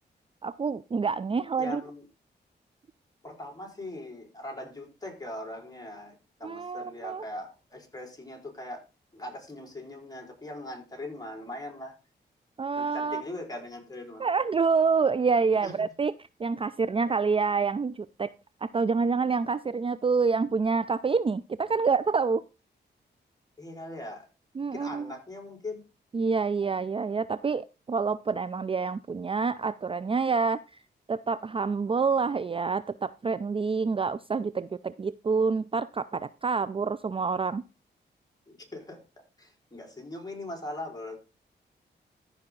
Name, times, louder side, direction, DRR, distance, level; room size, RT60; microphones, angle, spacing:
voice 1, 0.4-1.8 6.4-7.2 12.6-13.2 14.2-16.1 16.4-18.3 18.6-22.4 24.6-25.1 26.1-30.6 31.1-37.6, right 5 dB, 30° right, 16 dB, 0.4 m, -27 dB
voice 2, 1.6-2.0 3.2-8.8 9.1-12.0 12.8-14.2 15.6-15.8 17.0-17.2 23.6-24.3 24.7-25.8 38.5-39.0 39.4-41.2, left 1 dB, 20° left, 2 dB, 4.8 m, -40 dB
14.0 x 5.7 x 3.9 m, 0.30 s
cardioid pair, 65°, 19 cm